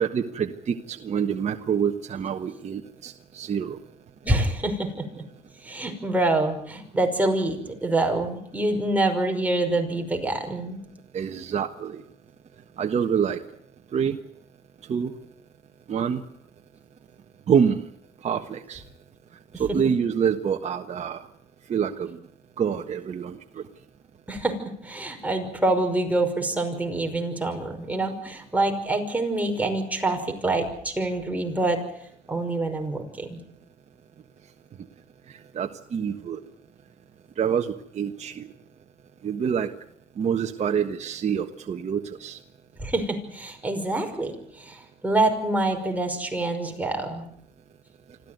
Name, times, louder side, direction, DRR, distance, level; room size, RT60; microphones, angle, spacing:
voice 1, 0.0-3.8 11.1-12.0 12.8-13.4 13.9-14.2 14.9-15.1 15.9-16.2 17.5-17.8 18.2-18.8 19.6-21.3 21.7-22.2 22.6-23.6 35.5-36.4 37.4-38.5 39.2-39.7 40.2-42.4, right 7 dB, 40° right, 4 dB, 1.4 m, -26 dB
voice 2, 4.2-5.2 5.6-10.8 19.5-19.8 24.3-31.8 32.3-33.4 42.8-47.3, right 2 dB, 10° right, 3 dB, 5.5 m, -26 dB
26.0 x 15.0 x 9.5 m, 0.68 s
cardioid pair, 110°, 17 cm